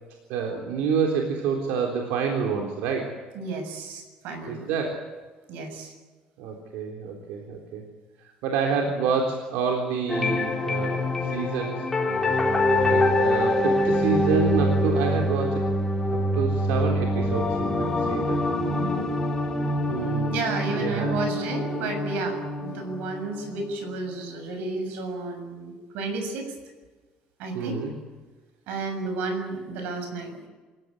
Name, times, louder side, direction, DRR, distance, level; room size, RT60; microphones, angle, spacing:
voice 1, 0.3-3.1 4.5-5.1 6.4-7.8 8.4-11.9 12.8-15.6 16.1-17.7 18.0-18.4 19.9-20.4 20.7-21.2 27.5-27.9, right 5 dB, 90° right, 1 dB, 3.8 m, -28 dB
voice 2, 3.3-4.7 5.5-5.9 18.6-19.1 19.9-26.5 27.4-27.8 28.7-30.5, right 3 dB, 70° right, 6 dB, 7.2 m, -32 dB
sound 1, 10.1-24.0, left 1 dB, 10° left, 3.6 m, -25 dB
27.5 x 16.5 x 9.9 m, 1.3 s
cardioid pair, 180°, 3 cm